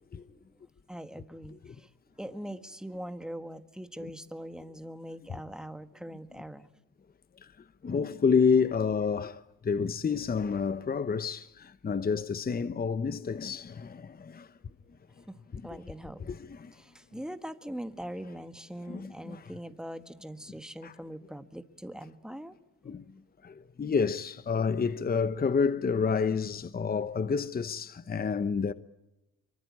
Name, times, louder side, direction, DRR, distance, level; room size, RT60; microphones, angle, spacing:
voice 1, 0.9-1.9 2.2-6.7 15.3-15.4 15.6-16.2 16.7-22.6, right 1 dB, ahead, 1.6 m, -42 dB
voice 2, 7.8-14.5 15.5-15.8 16.2-16.7 18.9-19.5 20.8-20.9 22.8-23.1 23.4-28.7, left 5 dB, 30° left, 1.0 m, -29 dB
24.5 x 24.0 x 8.6 m
cardioid pair, 90°, 30 cm